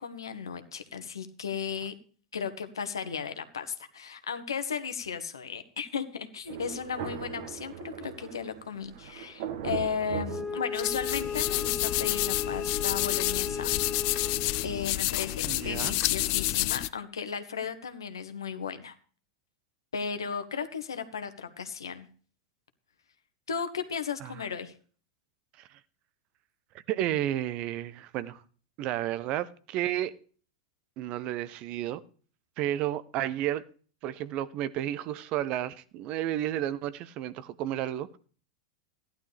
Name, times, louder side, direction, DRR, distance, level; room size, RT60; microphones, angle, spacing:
voice 1, 0.0-1.9 2.3-13.8 14.6-18.9 19.9-22.1 23.5-24.7, left 6 dB, 80° left, 1.5 m, -35 dB
Thunder, 6.5-11.3, right 7 dB, 60° right, 1.7 m, -39 dB
Wind instrument woodwind instrument, 10.2-14.8, left 5 dB, 10° left, 1.4 m, -35 dB
sound 1, 10.8-16.9, left 20 dB, 50° left, 0.6 m, -29 dB
voice 2, 15.5-15.9 24.2-24.3 25.6-25.7 26.9-28.4 28.8-30.1 31.0-32.0 32.6-33.6 34.0-38.2, right 12 dB, 45° right, 0.8 m, -32 dB
15.5 x 11.0 x 3.4 m
hypercardioid pair, 95°, 2 cm